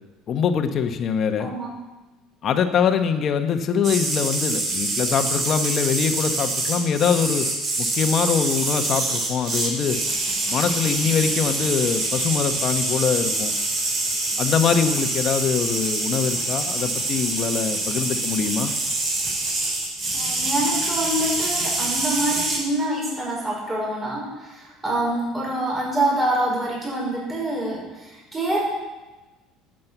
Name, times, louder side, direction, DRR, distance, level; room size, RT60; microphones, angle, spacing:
voice 1, 0.3-1.5 2.4-7.5 7.8-10.0 10.5-13.5 14.4-18.7, left 7 dB, 45° left, 7 dB, 1.2 m, -23 dB
sound 1, 3.8-22.6, right 2 dB, 40° right, 4.2 m, -25 dB
voice 2, 20.1-28.6, right 1 dB, 15° right, -4 dB, 5.2 m, -26 dB
12.0 x 7.7 x 8.1 m, 1.1 s
supercardioid pair, 110°, 0 cm